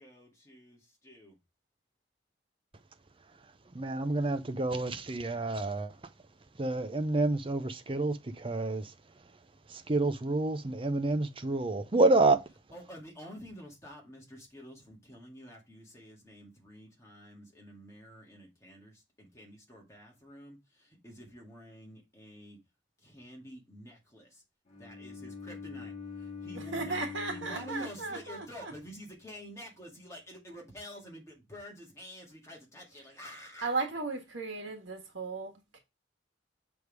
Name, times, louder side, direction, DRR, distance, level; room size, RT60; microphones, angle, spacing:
voice 1, 0.0-1.4 12.7-22.6 23.0-24.4 24.8-27.0 27.3-33.8, equal, 15° left, 2.0 m, -49 dB
voice 2, 3.7-5.9 6.6-8.9 9.7-12.4, right 2 dB, 30° right, 0.6 m, -28 dB
Bowed string instrument, 24.7-28.8, left 5 dB, 35° left, 1.8 m, -44 dB
voice 3, 26.7-28.7 33.6-35.8, right 3 dB, 80° right, 1.6 m, -36 dB
6.5 x 3.5 x 4.7 m
head